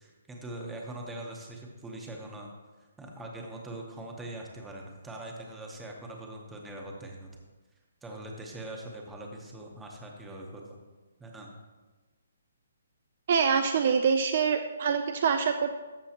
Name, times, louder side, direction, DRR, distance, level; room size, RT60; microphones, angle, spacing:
voice 1, 0.0-2.5 3.0-7.3 8.0-10.8 11.2-11.5, right 1 dB, 5° right, 0 dB, 0.8 m, -42 dB
voice 2, 13.3-15.7, right 6 dB, 35° right, 7 dB, 0.4 m, -25 dB
13.0 x 7.4 x 2.9 m, 1.3 s
hypercardioid pair, 175°, 0 cm